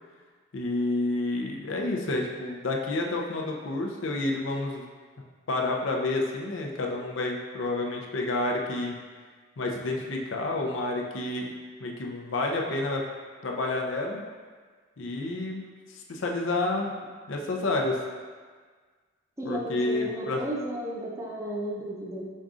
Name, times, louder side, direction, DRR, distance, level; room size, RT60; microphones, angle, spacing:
voice 1, 0.5-4.9 5.5-9.0 9.6-11.5 11.8-13.0 13.4-14.2 15.0-15.6 15.9-16.9 17.3-18.0 19.4-20.4, left 2 dB, 80° left, 1 dB, 0.5 m, -29 dB
voice 2, 19.4-22.3, right 1 dB, 15° right, -3 dB, 0.5 m, -34 dB
5.2 x 3.7 x 2.4 m, 1.5 s
head